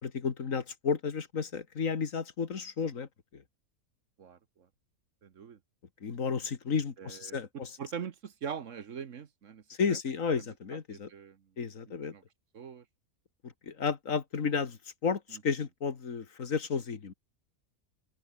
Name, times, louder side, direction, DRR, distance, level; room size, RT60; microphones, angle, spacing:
voice 1, 0.0-3.4 6.0-7.7 9.7-11.1 11.6-12.1 13.4-17.1, left 5 dB, 60° left, 2.1 m, -32 dB
voice 2, 4.2-4.7 5.2-5.6 7.0-7.4 7.8-9.6 9.9-10.0 10.4-10.5 10.9-11.5 12.1-12.2 12.5-12.8 15.3-15.4, right 7 dB, 60° right, 1.4 m, -42 dB
open air
omnidirectional pair, 1.6 m